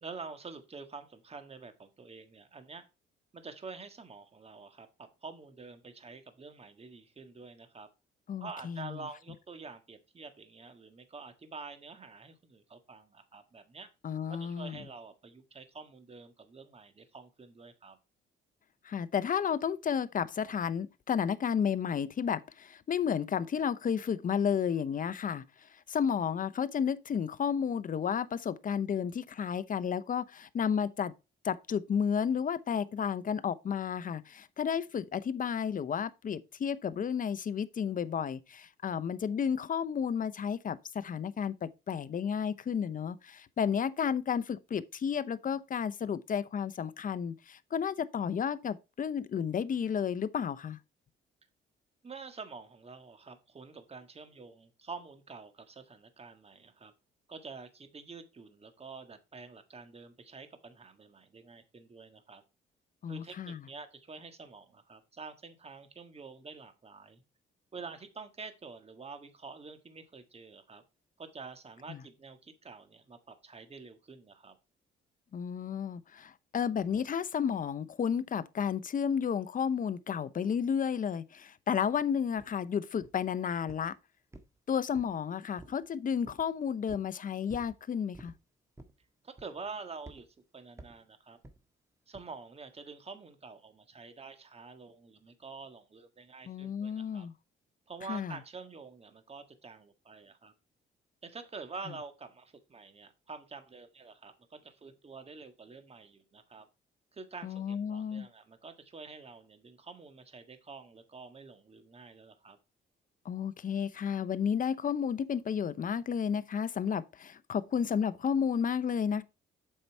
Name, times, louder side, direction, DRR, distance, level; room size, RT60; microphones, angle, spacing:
voice 1, 0.0-2.9 3.3-7.9 8.4-13.9 14.3-18.0 52.0-56.9 57.3-62.4 63.1-67.2 67.7-70.8 71.2-74.6 89.2-90.3 90.5-91.4 92.1-97.3 97.9-100.5 101.2-106.7 107.1-112.6, right 4 dB, 30° right, 1.6 m, -47 dB
voice 2, 8.3-9.0 14.0-14.8 18.8-31.1 31.4-50.8 63.0-63.6 71.9-72.0 75.3-83.9 84.7-88.3 96.5-97.3 98.1-98.4 107.4-108.3 113.2-119.2, left 7 dB, 45° left, 0.7 m, -32 dB
sound 1, 82.4-82.5 83.0-83.3 83.7-83.9 84.3-85.2 85.6-85.8 86.2-86.5 86.9-87.1 87.5-87.8 88.1-88.4 88.8-89.0 89.4-89.7 90.0-90.2 90.8-91.0 91.4-91.6 92.1-92.3, right 2 dB, 15° right, 1.6 m, -51 dB
7.8 x 5.5 x 4.5 m
cardioid pair, 90°, 20 cm